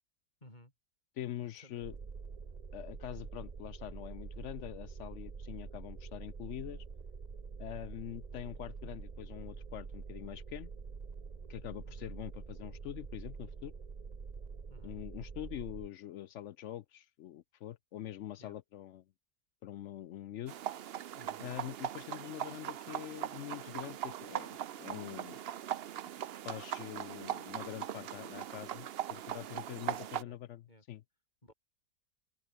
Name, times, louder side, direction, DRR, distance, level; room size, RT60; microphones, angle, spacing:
voice 1, 0.4-0.7 1.4-1.8 11.8-12.0 14.7-15.0 18.4-18.5 21.2-21.5 29.4-30.4 30.7-30.8 31.4-31.5, left 1 dB, 25° left, 8.2 m, -58 dB
voice 2, 1.2-2.0 2.7-6.8 7.6-10.7 11.5-13.7 14.8-19.0 19.6-20.6 21.4-25.4 26.4-30.6 30.9-31.0, left 12 dB, 75° left, 0.7 m, -44 dB
sound 1, 1.8-15.9, right 5 dB, 30° right, 0.9 m, -46 dB
sound 2, 20.5-30.2, right 10 dB, 75° right, 0.5 m, -40 dB
omnidirectional pair, 1.8 m